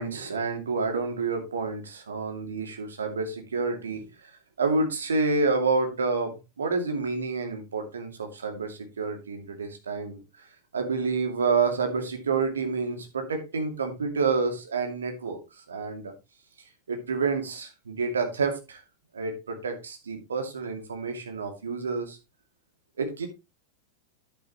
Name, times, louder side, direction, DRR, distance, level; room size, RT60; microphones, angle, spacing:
voice 1, 0.0-4.3 4.6-10.5 10.7-15.4 15.7-16.1 16.9-18.8 19.1-22.2 23.0-23.3, right 4 dB, 70° right, 2.4 m, -29 dB
10.5 x 8.8 x 3.0 m
figure-of-eight pair, 90°, 0 cm